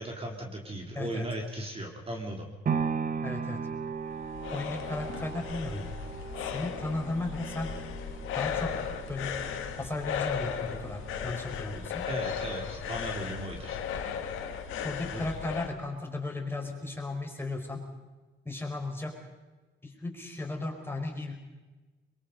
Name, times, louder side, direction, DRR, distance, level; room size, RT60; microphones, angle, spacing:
voice 1, 0.0-2.5 12.1-13.8 15.1-15.2, right 1 dB, 30° right, 1 dB, 3.3 m, -37 dB
voice 2, 0.9-1.3 3.2-3.7 4.5-5.9 6.4-7.7 8.3-8.7 9.1-9.4 9.8-12.0 14.8-17.8 18.5-19.2 19.8-21.4, left 2 dB, 10° left, 2 dB, 5.2 m, -35 dB
sound 1, 2.7-10.8 11.2-11.3, right 6 dB, 45° right, 1.5 m, -37 dB
sound 2, 3.9-15.7, left 7 dB, 90° left, 2.2 m, -36 dB
23.0 x 22.5 x 5.4 m, 1.2 s
cardioid pair, 90°, 20 cm